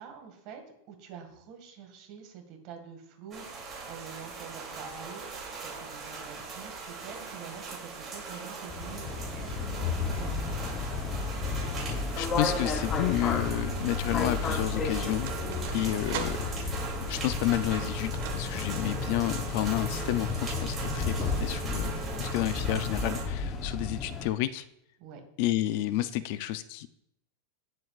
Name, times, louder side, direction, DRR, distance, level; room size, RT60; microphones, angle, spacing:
voice 1, 0.0-10.9 15.4-15.7 25.0-25.2, right 7 dB, 40° right, 4 dB, 1.9 m, -47 dB
sound 1, 3.3-23.2, right 4 dB, 20° right, 2.9 m, -40 dB
sound 2, 8.7-24.3, left 4 dB, 20° left, 0.9 m, -32 dB
voice 2, 12.2-15.3 15.7-16.7 17.1-24.6 25.4-26.9, left 14 dB, 50° left, 14 dB, 0.4 m, -31 dB
sound 3, 13.6-18.9, right 8 dB, 60° right, 1.5 m, -43 dB
17.5 x 7.7 x 2.5 m, 0.77 s
supercardioid pair, 165°, 0 cm